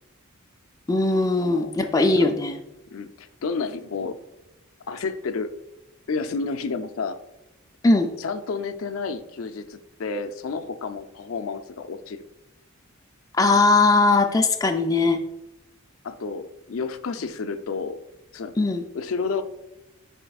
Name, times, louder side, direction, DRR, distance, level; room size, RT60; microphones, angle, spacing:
voice 1, 0.9-2.6 7.8-8.1 13.4-15.2 18.6-18.8, left 3 dB, 15° left, 5 dB, 0.4 m, -19 dB
voice 2, 1.4-1.7 2.2-2.3 2.9-4.2 4.9-5.5 6.1-7.2 8.2-12.2 15.0-15.1 16.0-18.0 18.3-18.5 18.9-19.4, left 4 dB, 80° left, 9 dB, 0.5 m, -30 dB
9.9 x 4.3 x 2.3 m, 0.91 s
head